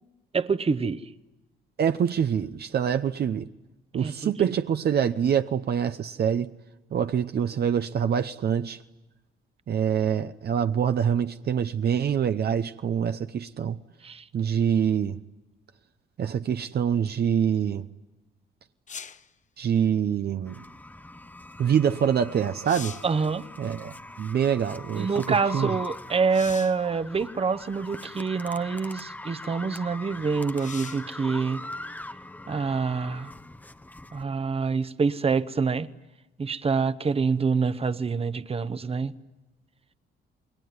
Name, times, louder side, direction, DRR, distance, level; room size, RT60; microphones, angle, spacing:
voice 1, 0.3-1.0 4.0-4.3 14.0-14.3 23.0-23.5 24.9-31.6 32.5-33.3 34.1-35.9 36.4-39.1, right 5 dB, 30° right, 1.0 m, -26 dB
voice 2, 1.8-3.5 3.9-6.5 6.9-8.8 9.7-13.8 14.3-15.2 16.2-17.9 19.6-20.6 21.6-22.9 23.6-25.7, right 8 dB, 55° right, 0.8 m, -25 dB
sound 1, 18.9-19.3 22.0-22.1 22.5-23.2 26.3-26.9 27.9-28.0 30.6-31.1 34.7-34.8, left 6 dB, 40° left, 0.9 m, -41 dB
sound 2, 20.5-34.2, left 2 dB, 10° left, 0.9 m, -41 dB
28.0 x 21.0 x 9.6 m
cardioid pair, 90°, 20 cm